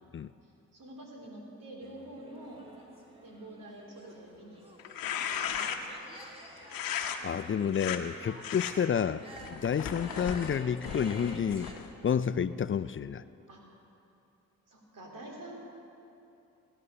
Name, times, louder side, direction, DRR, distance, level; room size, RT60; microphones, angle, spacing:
voice 1, 0.4-2.6 3.2-4.6 5.2-5.6 7.9-8.0 13.5-13.6 14.7-15.6, right 1 dB, 70° right, 0 dB, 3.2 m, -47 dB
sound 1, 1.8-11.7, right 1 dB, 15° right, 3.3 m, -51 dB
sound 2, 4.8-6.0 6.7-7.2 7.7-8.0 8.4-8.7 9.3-11.9, left 8 dB, 90° left, 0.9 m, -36 dB
voice 2, 7.2-9.2 9.5-11.7 12.0-13.2, left 7 dB, 35° left, 14 dB, 0.5 m, -30 dB
16.0 x 9.9 x 6.8 m, 2.8 s
supercardioid pair, 50°, 34 cm